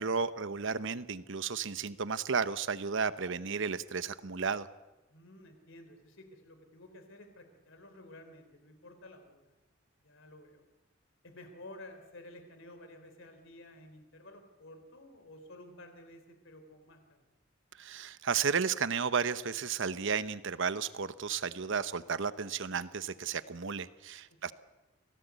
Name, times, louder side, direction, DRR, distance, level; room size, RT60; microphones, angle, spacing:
voice 1, 0.0-4.7 17.8-24.5, right 5 dB, 65° right, 14 dB, 0.9 m, -33 dB
voice 2, 5.1-9.4 10.0-10.6 11.2-17.2, left 1 dB, 70° left, 8 dB, 3.5 m, -52 dB
26.5 x 17.5 x 8.2 m, 1.1 s
head